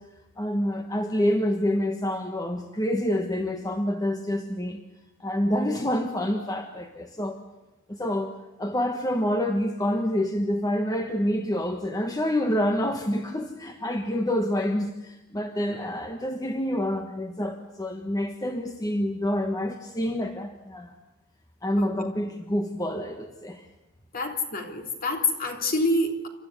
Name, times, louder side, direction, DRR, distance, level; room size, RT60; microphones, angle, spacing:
voice 1, 0.4-4.8 5.2-7.4 7.9-8.3 8.6-20.9 21.6-23.6, left 1 dB, 15° left, 5 dB, 1.4 m, -27 dB
voice 2, 24.1-26.3, left 2 dB, 45° left, 3 dB, 3.2 m, -26 dB
29.0 x 13.5 x 9.6 m, 1.0 s
head